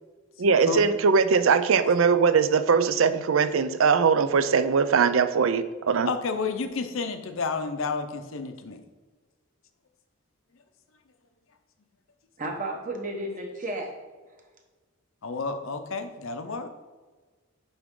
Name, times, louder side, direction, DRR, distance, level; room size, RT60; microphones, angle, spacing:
voice 1, 0.4-6.1, right 5 dB, 70° right, 12 dB, 0.4 m, -21 dB
voice 2, 6.1-8.8 15.2-16.7, left 4 dB, 70° left, 8 dB, 0.7 m, -30 dB
voice 3, 12.4-13.9, right 1 dB, 40° right, 2 dB, 1.0 m, -32 dB
9.6 x 3.6 x 3.7 m, 1.3 s
head